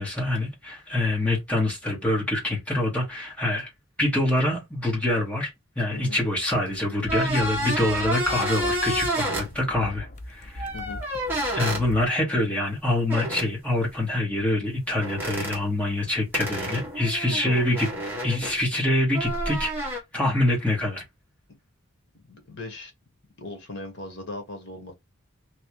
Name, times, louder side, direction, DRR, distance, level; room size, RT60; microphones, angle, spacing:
voice 1, 0.0-3.7 4.0-5.5 5.7-10.7 11.5-17.9 18.2-21.0, left 1 dB, 5° left, 1.5 m, -25 dB
sound 1, 7.0-12.1, left 1 dB, 35° left, 0.6 m, -40 dB
sound 2, 7.1-9.5 10.6-11.8 13.1-13.5 15.0-15.6 16.3-18.6 19.1-20.0, right 1 dB, 10° right, 1.1 m, -29 dB
voice 2, 17.2-17.7 22.1-22.9 23.4-24.9, left 2 dB, 55° left, 1.4 m, -38 dB
3.2 x 2.8 x 3.0 m
head